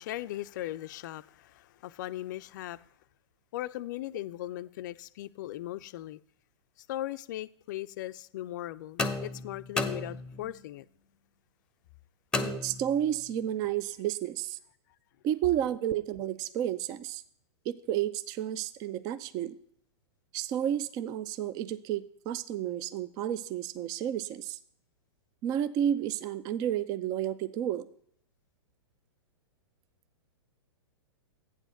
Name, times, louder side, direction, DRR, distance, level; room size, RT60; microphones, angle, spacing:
voice 1, 0.0-2.8 3.5-6.2 6.8-10.9, left 14 dB, 45° left, 0.4 m, -38 dB
sound 1, 9.0-10.6 12.3-13.3, left 3 dB, 5° left, 0.8 m, -33 dB
voice 2, 12.4-14.6 15.2-17.2 17.7-19.5 20.3-24.6 25.4-27.9, right 11 dB, 25° right, 0.4 m, -31 dB
8.9 x 4.0 x 6.5 m
figure-of-eight pair, 105°, 15 cm